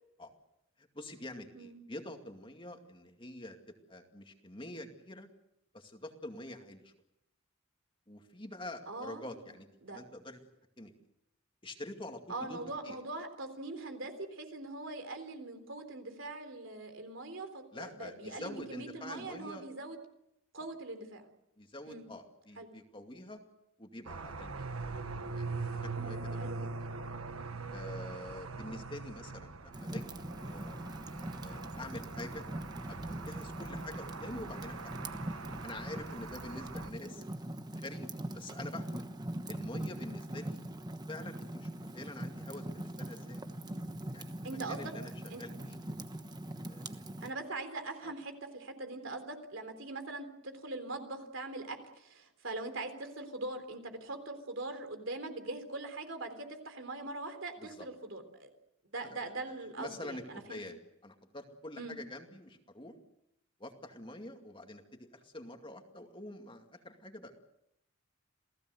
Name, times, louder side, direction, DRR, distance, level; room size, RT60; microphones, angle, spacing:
voice 1, 0.8-5.3 5.7-6.9 8.1-10.4 10.8-10.9 11.6-12.6 12.8-13.0 17.7-19.7 21.6-23.4 23.8-24.5 25.3-26.7 27.7-30.8 31.4-32.5 32.9-35.4 35.6-37.2 37.7-38.1 38.3-39.0 39.5-40.6 41.1-43.4 44.1-45.1 45.4-45.8 46.7-46.9 48.0-48.1 57.6-57.9 59.1-60.8 61.0-62.9 63.6-67.4, left 1 dB, 25° left, 4 dB, 2.3 m, -46 dB
voice 2, 8.9-9.3 9.8-10.0 12.3-20.0 20.5-21.2 21.8-22.1 22.6-22.7 26.0-26.7 44.4-44.9 45.3-45.4 47.2-58.5 58.9-60.6 61.8-62.0, right 2 dB, 65° right, 7 dB, 3.7 m, -42 dB
sound 1, 24.1-36.9, right 3 dB, 85° right, 1.5 m, -42 dB
Fire, 29.7-47.3, right 1 dB, 20° right, 1.1 m, -42 dB
28.0 x 17.5 x 8.0 m, 0.81 s
head